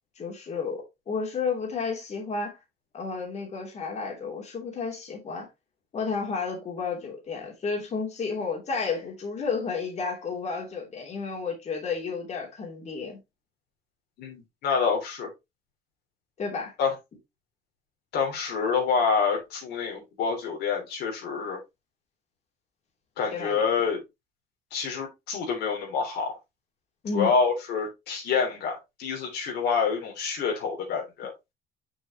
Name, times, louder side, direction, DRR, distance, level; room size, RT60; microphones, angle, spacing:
voice 1, 0.2-2.6 2.9-5.5 5.9-13.2 16.4-16.7 23.3-23.6 27.0-27.3, left 4 dB, 40° left, 3.0 m, -32 dB
voice 2, 14.2-15.3 16.8-16.9 18.1-21.6 23.2-24.0 24.7-26.4 27.1-31.3, left 5 dB, 75° left, 3.3 m, -27 dB
6.5 x 6.1 x 3.0 m
cardioid pair, 110°, 17 cm